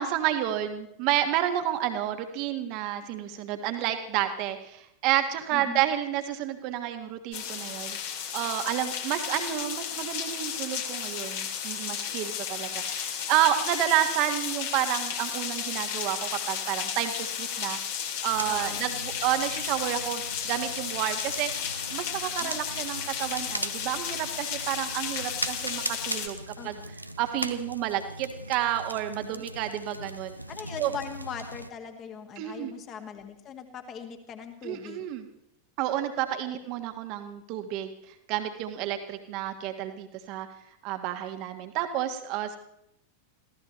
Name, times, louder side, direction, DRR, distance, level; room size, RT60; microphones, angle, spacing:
voice 1, 0.0-17.8 18.2-26.4 26.6-26.8 27.2-30.4 30.8-30.9 32.4-32.7 34.6-35.2 35.8-37.9 38.3-40.5 40.8-42.6, right 12 dB, 45° right, 7 dB, 1.5 m, -30 dB
voice 2, 5.5-5.8 18.4-18.9 22.4-23.0 26.6-26.7 30.5-35.0, left 7 dB, 30° left, 6 dB, 2.0 m, -40 dB
sound 1, 7.3-26.3, left 8 dB, 50° left, 2.2 m, -33 dB
sound 2, 18.3-31.7, right 1 dB, 90° right, 0.7 m, -39 dB
27.0 x 16.0 x 3.2 m, 0.74 s
figure-of-eight pair, 90°, 0 cm